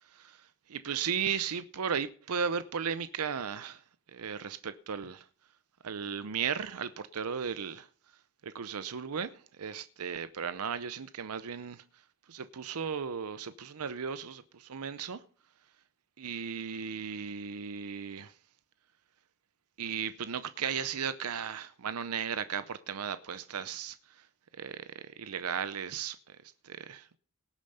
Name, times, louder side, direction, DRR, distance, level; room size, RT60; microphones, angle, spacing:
voice 1, 0.0-3.8 4.1-5.3 5.8-7.9 8.4-11.8 12.3-15.2 16.2-18.3 19.8-24.3 24.5-26.4 26.6-27.2, right 7 dB, 80° right, 0.6 m, -36 dB
18.0 x 7.0 x 5.5 m
head